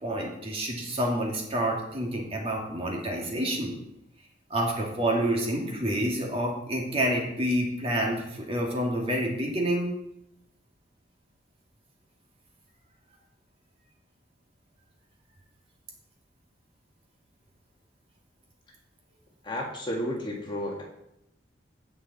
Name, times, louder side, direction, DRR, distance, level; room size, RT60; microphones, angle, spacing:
voice 1, 0.0-3.7 4.5-9.9, right 1 dB, 35° right, -1 dB, 2.2 m, -28 dB
voice 2, 19.4-20.8, equal, 25° left, -1 dB, 1.8 m, -32 dB
16.0 x 5.5 x 4.2 m, 0.82 s
head